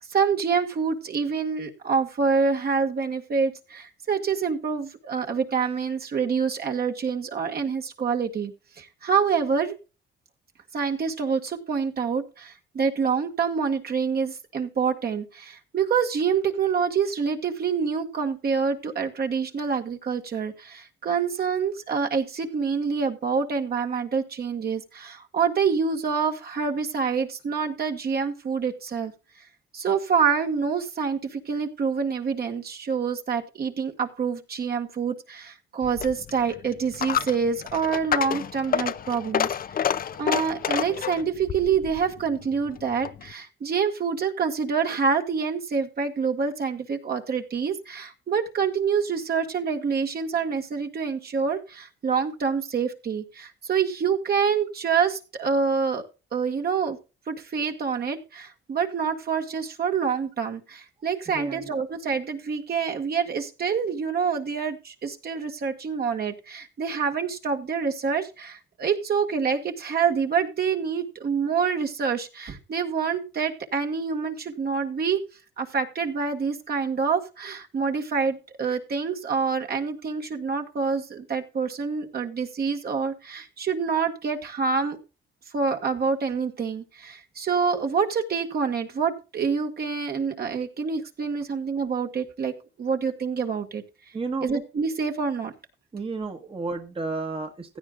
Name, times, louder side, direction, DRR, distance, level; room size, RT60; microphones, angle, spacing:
voice 1, 0.1-9.8 10.7-29.1 29.7-39.5 40.2-56.0 56.3-57.0 57.3-75.2 75.6-85.0 85.5-93.8 94.4-95.5, right 6 dB, 50° right, 4 dB, 1.9 m, -26 dB
Coin (dropping), 35.8-43.3, left 9 dB, 50° left, 0.6 m, -29 dB
voice 2, 61.3-61.7 94.1-94.5 95.9-97.8, right 3 dB, 25° right, 5 dB, 1.4 m, -32 dB
16.0 x 9.8 x 2.5 m, 0.31 s
cardioid pair, 90°, 20 cm